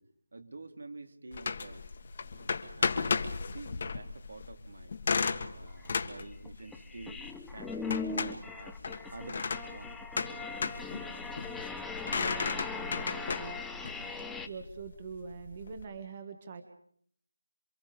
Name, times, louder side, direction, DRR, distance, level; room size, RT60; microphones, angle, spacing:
voice 1, 0.3-2.0 2.2-3.2 3.5-5.0 5.3-7.2 7.5-10.4, right 3 dB, 65° right, 5 dB, 3.5 m, -49 dB
sound 1, 1.3-15.8, left 5 dB, 35° left, 1.7 m, -35 dB
sound 2, 5.2-5.3 5.8-14.5, left 4 dB, ahead, 0.9 m, -40 dB
voice 2, 12.1-13.6 14.2-16.6, right 5 dB, 25° right, 6 dB, 1.8 m, -44 dB
28.0 x 25.5 x 5.2 m, 0.65 s
figure-of-eight pair, 170°, 0 cm